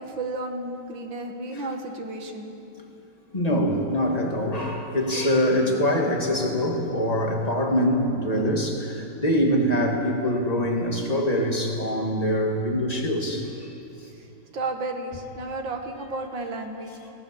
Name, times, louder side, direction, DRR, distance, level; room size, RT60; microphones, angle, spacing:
voice 1, 0.0-2.5 14.5-16.9, right 2 dB, 85° right, 3 dB, 2.4 m, -32 dB
voice 2, 3.3-13.5, equal, 20° left, 1 dB, 2.4 m, -24 dB
26.0 x 18.5 x 7.1 m, 2.9 s
omnidirectional pair, 2.0 m